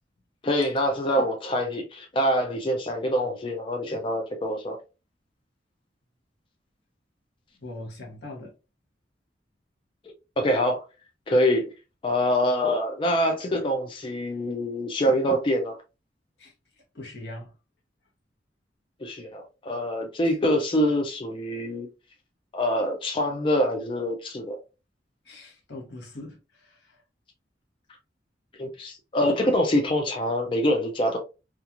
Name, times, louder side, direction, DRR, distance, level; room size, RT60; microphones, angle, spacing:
voice 1, 0.4-4.8 10.4-10.8 11.3-11.7 12.0-15.8 19.0-21.9 22.5-24.6 28.6-31.2, equal, 30° left, 0.4 m, -25 dB
voice 2, 7.6-8.5 16.4-17.5 25.2-27.0, left 2 dB, 80° left, 1.0 m, -42 dB
2.9 x 2.4 x 2.3 m
head